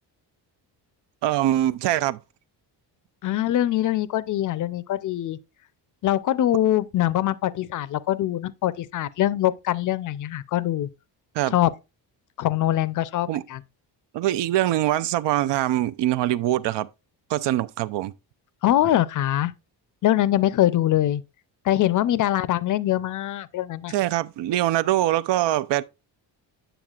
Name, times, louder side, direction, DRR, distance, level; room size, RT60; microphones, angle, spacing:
voice 1, 1.2-2.2 11.3-11.5 13.3-13.4 14.1-16.9 17.3-18.1 23.9-25.8, right 14 dB, 75° right, 0.6 m, -23 dB
voice 2, 3.2-5.4 6.0-10.9 11.5-11.7 12.4-13.6 18.6-19.5 20.0-21.2 21.6-23.9, left 13 dB, 45° left, 0.5 m, -23 dB
9.0 x 7.0 x 2.4 m
cardioid pair, 145°, 43 cm